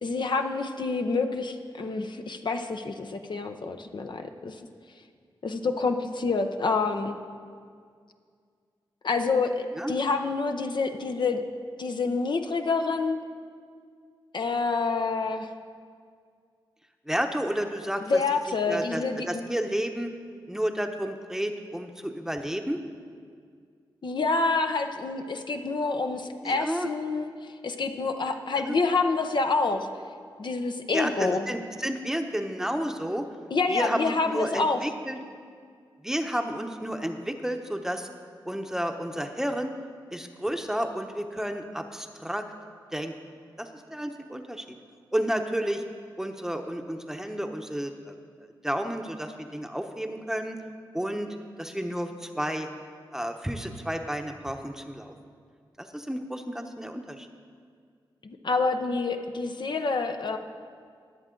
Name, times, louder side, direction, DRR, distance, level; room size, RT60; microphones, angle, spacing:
voice 1, 0.0-4.6 5.4-7.2 9.0-11.4 11.8-13.2 14.3-15.5 18.1-19.5 24.0-27.3 27.6-29.9 30.4-31.5 33.5-34.8 58.2-60.4, left 4 dB, 60° left, 6 dB, 0.8 m, -27 dB
voice 2, 17.1-18.2 18.7-20.1 20.5-22.8 26.4-26.9 28.6-28.7 30.9-33.2 33.7-35.2 36.0-38.1 38.5-39.7 40.1-42.4 42.9-43.1 43.6-44.6 45.1-45.8 46.2-48.2 48.6-50.6 50.9-52.7 53.1-55.1 55.8-57.3, equal, 5° right, 5 dB, 0.9 m, -31 dB
21.5 x 7.4 x 3.8 m, 2.1 s
cardioid pair, 65°, 9 cm